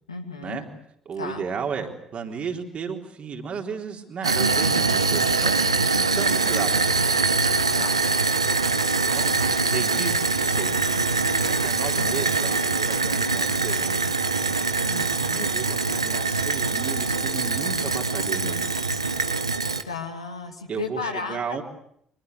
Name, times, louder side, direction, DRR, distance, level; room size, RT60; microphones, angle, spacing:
voice 1, 0.1-0.6 1.2-1.5 7.8-7.9 11.9-12.3 14.8-15.5 19.8-21.6, left 4 dB, 85° left, 3 dB, 2.5 m, -34 dB
voice 2, 1.1-5.5 6.2-7.1 9.1-10.8 11.4-14.1 15.4-18.9 20.7-21.6, right 6 dB, 45° right, 3 dB, 3.9 m, -34 dB
sound 1, 4.2-19.8, right 4 dB, 85° right, 1.0 m, -23 dB
25.0 x 22.0 x 8.3 m, 0.69 s
figure-of-eight pair, 50°, 3 cm